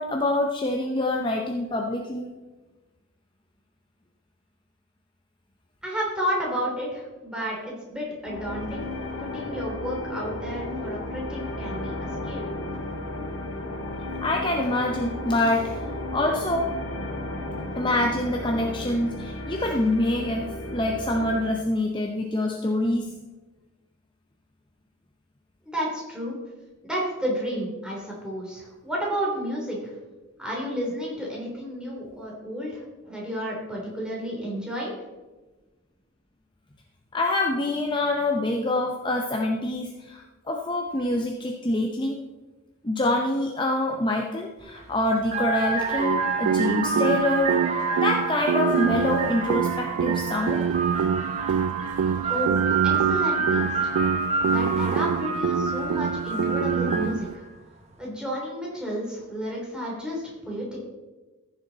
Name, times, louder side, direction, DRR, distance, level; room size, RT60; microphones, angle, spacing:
voice 1, 0.0-2.3 14.2-15.7 16.1-16.7 17.8-23.1 37.1-42.2 42.8-50.6, left 1 dB, 20° left, 1 dB, 0.7 m, -26 dB
voice 2, 5.8-8.8 9.2-12.5 25.7-26.4 26.8-29.9 30.4-35.0 52.3-53.9 54.5-57.5 58.0-60.8, equal, 5° right, -4 dB, 3.0 m, -31 dB
sound 1, 8.3-21.6, left 1 dB, 80° left, 2.1 m, -34 dB
sound 2, 44.6-44.8 45.2-57.3, right 4 dB, 30° right, 1.1 m, -28 dB
sound 3, 46.0-57.4, right 7 dB, 90° right, 0.3 m, -26 dB
14.5 x 6.9 x 4.0 m, 1.2 s
head